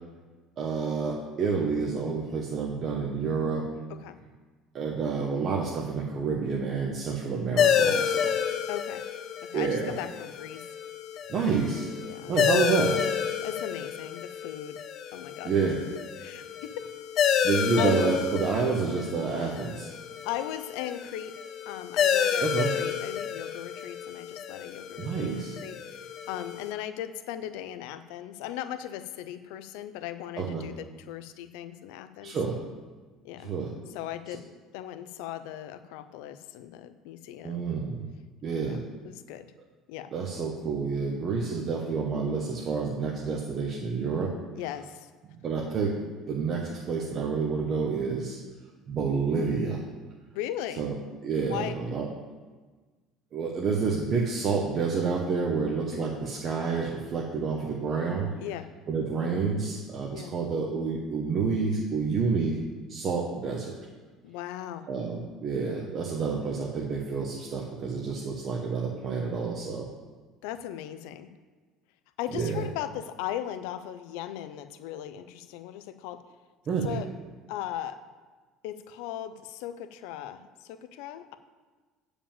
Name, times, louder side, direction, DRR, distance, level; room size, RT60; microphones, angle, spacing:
voice 1, 0.6-3.7 4.7-8.3 9.5-9.9 11.3-11.9 12.2-13.0 15.4-15.8 17.4-19.9 22.4-22.7 25.0-25.6 30.4-30.7 32.2-32.6 33.4-33.7 37.4-38.1 38.4-38.8 40.1-44.3 45.4-46.0 46.2-48.4 48.9-49.8 50.8-50.9 51.2-52.1 53.3-58.3 58.9-62.6 62.9-63.8 64.9-69.9 72.3-72.6 76.7-77.0, right 5 dB, 30° right, -1 dB, 0.9 m, -29 dB
sound 1, 7.6-26.7, left 8 dB, 35° left, 0.5 m, -30 dB
voice 2, 8.7-9.0 9.5-10.7 11.9-12.4 13.4-15.5 15.8-16.7 17.8-18.0 20.2-21.3 21.7-32.3 33.2-33.5 33.9-34.5 34.7-37.8 38.7-38.8 39.0-39.5 39.9-40.1 44.5-45.1 50.3-50.8 51.5-51.8 55.9-56.0 58.3-58.7 60.1-60.3 64.2-64.9 70.4-71.3 72.2-76.2 76.8-77.1 77.5-78.0 78.6-81.3, left 12 dB, 80° left, 11 dB, 0.6 m, -38 dB
8.8 x 5.1 x 7.2 m, 1.4 s
cardioid pair, 180°, 0 cm